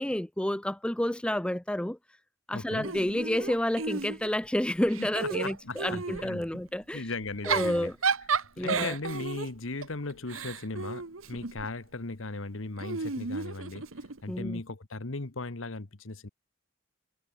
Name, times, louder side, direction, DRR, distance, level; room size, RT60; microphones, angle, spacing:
voice 1, 0.0-2.0 2.5-7.1 7.5-7.9 8.6-8.9 14.3-14.6, left 1 dB, 5° left, 0.4 m, -30 dB
voice 2, 2.5-2.9 5.0-6.6 6.9-7.9 8.6-13.9 14.2-16.3, left 3 dB, 75° left, 1.4 m, -37 dB
Giggle / Chuckle chortle, 2.8-4.5 4.9-6.3 7.2-11.7 12.8-14.2, right 5 dB, 85° right, 1.5 m, -33 dB
head